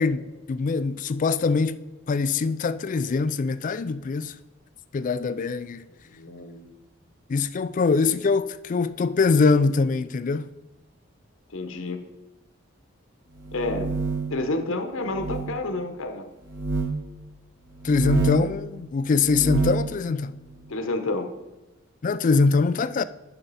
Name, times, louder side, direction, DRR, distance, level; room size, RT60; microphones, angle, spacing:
voice 1, 0.0-4.4 4.9-5.9 7.3-10.5 17.8-20.3 22.0-23.0, left 4 dB, 40° left, 0.3 m, -23 dB
voice 2, 6.0-6.7 11.5-12.0 13.5-14.0 14.3-16.2 20.7-21.3, left 2 dB, 70° left, 0.9 m, -29 dB
sound 1, 13.4-14.4 15.1-15.5 16.5-16.9 17.8-18.5 19.2-19.9, right 4 dB, 60° right, 1.4 m, -27 dB
9.8 x 5.9 x 4.1 m
head